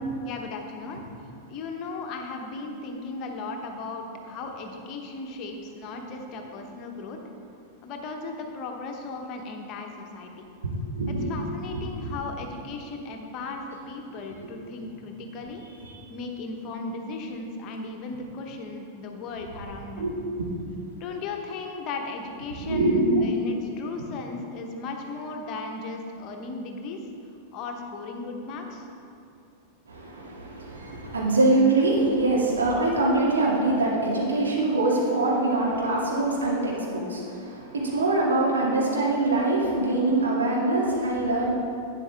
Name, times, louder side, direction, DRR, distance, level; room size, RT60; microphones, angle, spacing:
voice 1, 0.2-1.0 1.5-7.2 7.8-10.5 11.1-15.6 16.1-20.0 21.0-27.1 27.5-28.9, left 3 dB, 40° left, 3 dB, 1.1 m, -36 dB
voice 2, 10.6-11.3 11.7-11.8 20.0-20.1 22.6-23.1 29.9-41.5, right 2 dB, 70° right, -4 dB, 2.3 m, -24 dB
11.5 x 9.1 x 3.6 m, 2.6 s
figure-of-eight pair, 90°, 0 cm